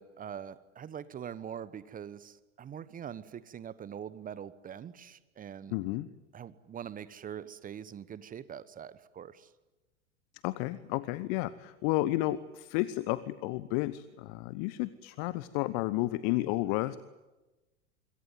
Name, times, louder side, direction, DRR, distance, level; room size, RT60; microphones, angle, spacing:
voice 1, 0.0-5.8 6.3-9.5, right 8 dB, 25° right, 16 dB, 1.1 m, -43 dB
voice 2, 5.7-6.1 10.4-17.0, left 17 dB, 45° left, 16 dB, 1.1 m, -32 dB
26.0 x 22.5 x 9.4 m, 1.1 s
figure-of-eight pair, 85°, 36 cm